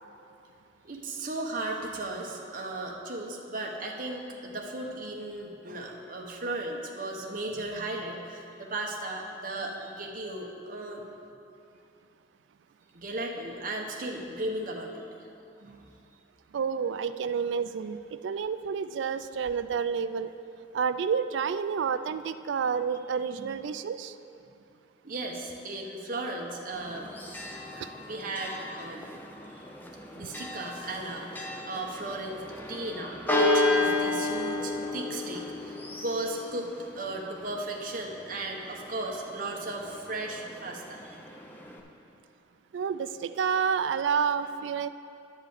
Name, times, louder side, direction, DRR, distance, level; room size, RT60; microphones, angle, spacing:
voice 1, 0.8-11.1 12.9-15.0 15.6-15.8 23.2-23.5 25.0-27.2 28.0-29.1 30.1-36.7 36.9-41.2, right 2 dB, 45° right, 0 dB, 1.0 m, -36 dB
voice 2, 16.5-20.3 20.7-24.1 42.7-44.9, right 6 dB, 70° right, 13 dB, 0.3 m, -29 dB
Church bell, 26.7-41.8, left 2 dB, 10° left, 0.6 m, -33 dB
10.5 x 5.0 x 8.2 m, 2.6 s
head